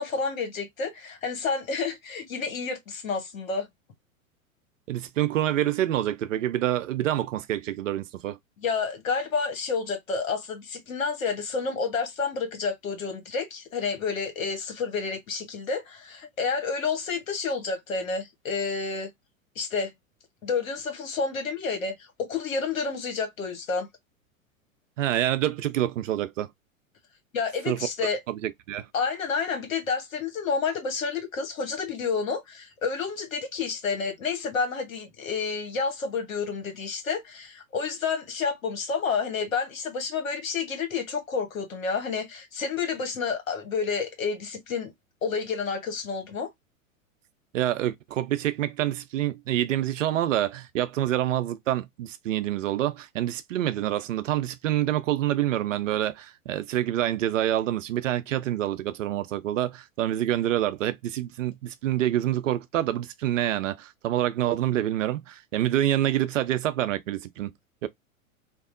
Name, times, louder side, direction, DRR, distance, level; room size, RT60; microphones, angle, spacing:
voice 1, 0.0-3.7 8.6-19.1 19.6-19.9 20.4-23.9 27.3-28.2 28.9-44.9 45.2-46.5, left 5 dB, 70° left, 1.1 m, -30 dB
voice 2, 4.9-8.4 25.0-26.5 27.7-27.8 28.3-28.9 47.5-67.5 67.8-67.9, right 12 dB, 65° right, 0.5 m, -27 dB
2.9 x 2.0 x 2.4 m
figure-of-eight pair, 95°, 41 cm